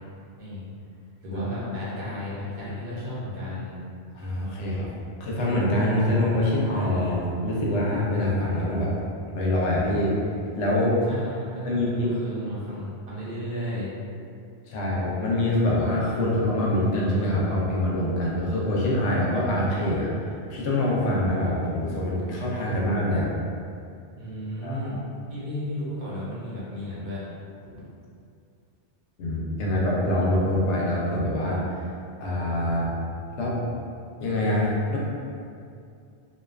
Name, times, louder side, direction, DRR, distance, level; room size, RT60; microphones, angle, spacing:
voice 1, 0.4-0.7 1.2-3.8 11.1-13.9 24.2-24.9 25.3-27.2, left 1 dB, 60° right, -8 dB, 0.8 m, -34 dB
voice 2, 4.1-4.9 5.2-8.9 9.3-10.1 10.5-10.9 11.6-12.2 14.7-23.3 24.6-24.9 29.2-31.8 32.2-32.9 33.4-33.6 34.2-35.0, left 1 dB, 90° left, -4 dB, 0.9 m, -25 dB
2.5 x 2.3 x 2.3 m, 2.4 s
omnidirectional pair, 1.1 m